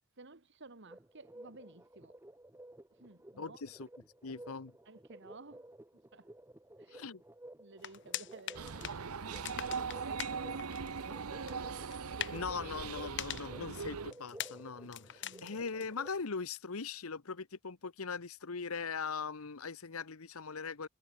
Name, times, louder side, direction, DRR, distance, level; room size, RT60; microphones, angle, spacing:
voice 1, 0.1-2.2 2.9-3.6 4.9-6.3 6.8-7.0 7.6-9.2 9.5-11.5 15.2-15.6, right 3 dB, 55° right, 1.7 m, -55 dB
sound 1, 0.9-16.2, right 1 dB, 10° right, 0.9 m, -55 dB
voice 2, 3.4-3.9 4.2-4.7 6.9-7.2 12.3-20.9, left 5 dB, 75° left, 1.0 m, -40 dB
sound 2, 7.8-16.3, left 11 dB, 55° left, 1.8 m, -45 dB
sound 3, 8.5-14.1, right 5 dB, 90° right, 0.9 m, -40 dB
head